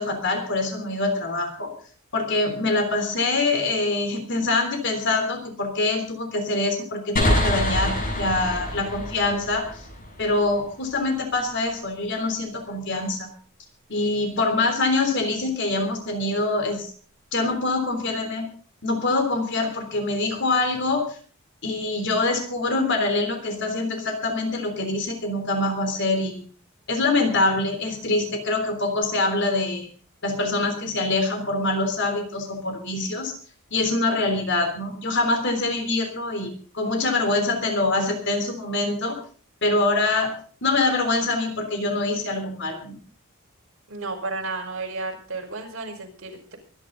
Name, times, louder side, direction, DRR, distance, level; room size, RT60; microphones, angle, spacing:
voice 1, 0.0-1.7 2.1-9.6 10.2-13.3 13.9-16.9 17.3-18.5 18.8-21.0 21.6-26.4 26.9-29.9 30.2-33.3 33.7-39.2 39.6-40.3 40.6-43.0, left 2 dB, 55° left, 5 dB, 3.5 m, -24 dB
sound 1, 7.2-10.6, left 1 dB, 40° left, 7.0 m, -26 dB
voice 2, 43.9-46.6, right 3 dB, 65° right, 0 dB, 5.1 m, -32 dB
24.5 x 10.5 x 4.0 m, 0.43 s
head